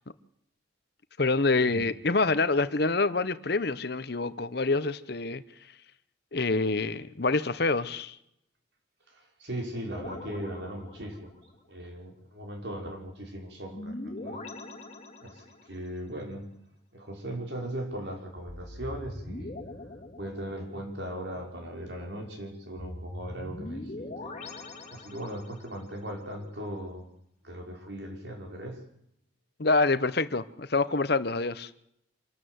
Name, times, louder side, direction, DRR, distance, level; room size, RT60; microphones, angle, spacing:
voice 1, 1.2-5.4 6.3-8.2 29.6-31.7, left 3 dB, 55° left, 0.9 m, -26 dB
voice 2, 9.1-11.3 11.7-14.4 15.2-16.5 16.9-19.5 20.2-24.3 24.9-27.1 27.4-28.8, right 1 dB, 60° right, 5.3 m, -38 dB
sound 1, 10.0-11.5 13.7-15.8 18.5-21.0 22.8-25.8, left 1 dB, 35° left, 2.2 m, -42 dB
26.5 x 12.5 x 8.0 m
head